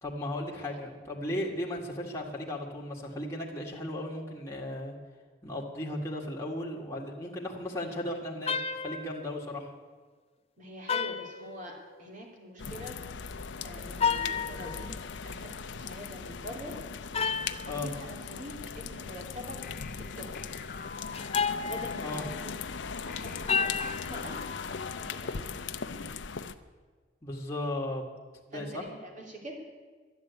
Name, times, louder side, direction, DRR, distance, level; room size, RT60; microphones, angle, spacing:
voice 1, 0.0-4.9 5.4-8.5 8.8-9.7 17.7-17.9 22.0-22.2 27.2-28.0 28.5-28.8, left 1 dB, 15° left, -3 dB, 1.9 m, -36 dB
sound 1, 8.5-9.2 10.9-12.1 13.9-14.9 17.1-17.8 21.1-22.5 23.5-24.2, left 6 dB, 35° left, 0.5 m, -31 dB
voice 2, 10.6-13.0 13.6-14.9 15.2-16.8 17.6-19.6 20.0-20.5 21.7-22.6 22.9-24.7 25.0-25.6 28.5-29.6, equal, 45° right, 1 dB, 3.1 m, -45 dB
sound 2, 12.6-26.5, left 5 dB, 75° left, 0.6 m, -39 dB
sound 3, 19.6-22.1 23.1-25.6, left 6 dB, 50° left, 0.9 m, -47 dB
11.5 x 10.5 x 8.2 m, 1.4 s
head